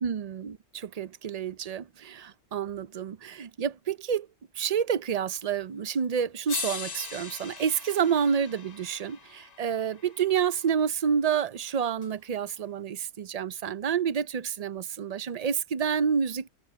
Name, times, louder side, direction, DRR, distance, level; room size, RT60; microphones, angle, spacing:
voice 1, 0.0-4.3 4.5-16.5, right 7 dB, 55° right, 0.4 m, -29 dB
sound 1, 5.9-6.0 6.5-10.7 12.0-12.1, left 5 dB, 35° left, 0.9 m, -40 dB
omnidirectional pair, 1.4 m